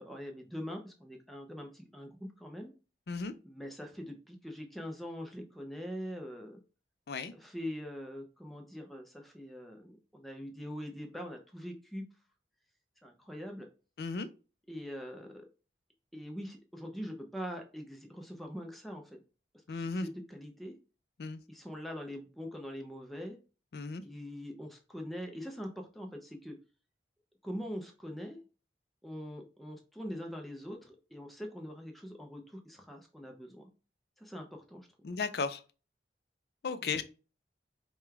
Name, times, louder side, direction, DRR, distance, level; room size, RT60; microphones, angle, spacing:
voice 1, 0.0-2.7 3.4-6.6 7.3-12.0 13.0-13.7 14.7-15.5 16.1-19.2 19.7-20.7 21.5-23.4 24.0-26.6 27.4-28.4 29.0-33.7 34.2-34.9 36.8-37.0, equal, ahead, 0.5 m, -43 dB
voice 2, 19.7-20.1 21.2-21.4 23.7-24.0 35.0-35.6 36.6-37.0, left 4 dB, 60° left, 0.4 m, -35 dB
4.9 x 2.3 x 3.3 m
head